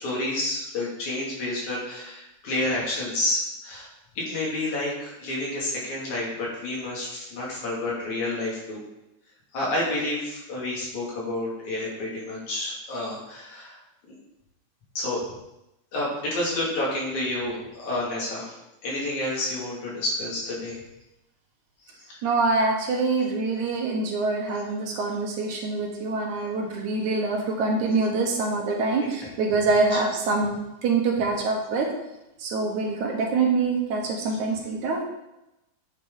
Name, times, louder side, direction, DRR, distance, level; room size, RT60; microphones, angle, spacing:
voice 1, 0.0-3.9 4.2-8.8 9.5-13.8 15.0-15.2 15.9-18.6 18.8-20.8 22.1-22.2 29.0-29.1, left 1 dB, 65° left, -5 dB, 3.6 m, -29 dB
voice 2, 22.2-30.5 30.8-31.9 32.4-35.0, right 3 dB, 70° right, 1 dB, 2.4 m, -25 dB
9.2 x 5.7 x 3.7 m, 0.90 s
omnidirectional pair, 3.7 m